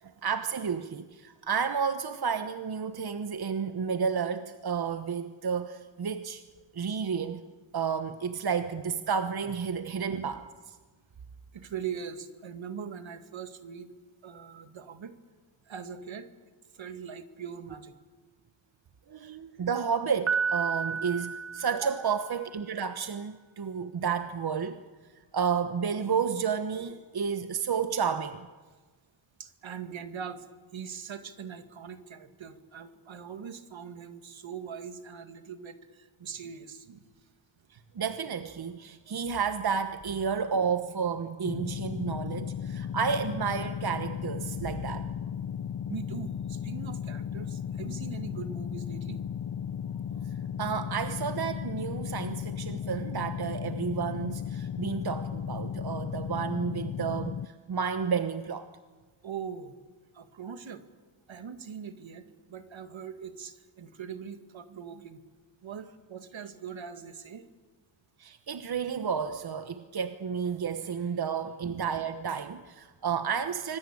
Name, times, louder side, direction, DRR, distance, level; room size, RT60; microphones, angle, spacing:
voice 1, 0.0-6.4 6.7-7.4 7.7-10.4 19.1-24.8 25.3-28.5 37.7-45.1 50.6-58.7 68.2-73.8, right 6 dB, 50° right, 9 dB, 1.2 m, -31 dB
voice 2, 11.5-13.9 14.2-15.2 15.7-16.3 16.7-18.0 19.2-19.4 29.4-30.5 30.7-37.1 43.2-43.4 45.9-49.2 59.2-59.8 60.1-60.8 61.3-65.2 65.6-67.4 71.6-71.9, right 7 dB, 70° right, 9 dB, 2.0 m, -41 dB
Piano, 20.3-22.4, right 6 dB, 30° right, 0.7 m, -31 dB
sound 1, 41.4-57.5, left 8 dB, 45° left, 0.8 m, -35 dB
25.5 x 21.5 x 8.7 m, 1.4 s
cardioid pair, 85°, 47 cm